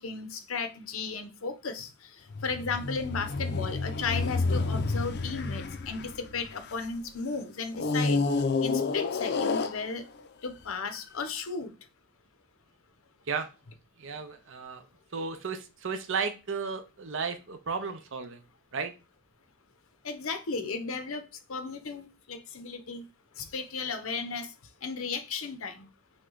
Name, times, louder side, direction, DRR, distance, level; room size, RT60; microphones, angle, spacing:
voice 1, 0.0-8.2 8.6-10.0 10.4-11.7 20.0-23.0 23.4-24.5 24.8-25.9, left 4 dB, 90° left, 0.8 m, -35 dB
sound 1, 2.3-7.0 7.7-10.3 11.0-11.1, left 3 dB, 55° left, 0.5 m, -29 dB
voice 2, 14.0-14.9 15.1-18.4 18.7-18.9, right 5 dB, 65° right, 0.7 m, -34 dB
6.0 x 2.2 x 3.8 m
head